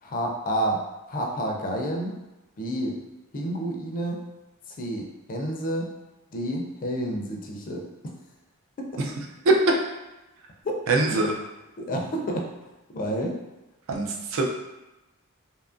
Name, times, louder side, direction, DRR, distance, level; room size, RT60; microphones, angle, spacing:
voice 1, 0.0-2.2 2.6-3.0 3.3-4.2 4.7-5.9 6.3-7.9 8.8-9.1 10.6-10.8 11.8-12.5 12.9-13.4, right 1 dB, 40° left, 0 dB, 0.4 m, -29 dB
voice 2, 9.5-9.8 10.9-11.3 13.9-14.5, right 2 dB, 65° right, 1 dB, 0.4 m, -22 dB
2.7 x 2.4 x 2.4 m, 1.0 s
head